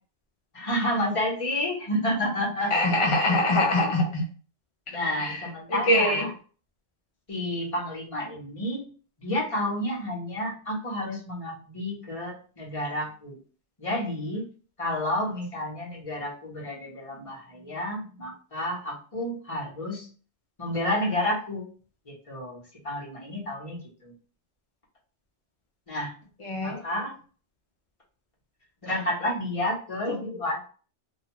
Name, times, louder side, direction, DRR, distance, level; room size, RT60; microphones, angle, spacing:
voice 1, 0.5-2.7 4.9-6.3 7.3-8.8 9.2-13.4 13.8-14.5 14.8-20.1 20.6-21.7 22.1-24.1 25.9-26.1 26.6-27.2 28.8-30.7, left 1 dB, 30° left, -4 dB, 0.9 m, -30 dB
voice 2, 2.7-4.2 5.2-5.4 5.7-6.3 26.4-26.8, left 1 dB, 55° left, 0 dB, 0.3 m, -23 dB
2.6 x 2.2 x 2.9 m, 0.40 s
omnidirectional pair, 1.2 m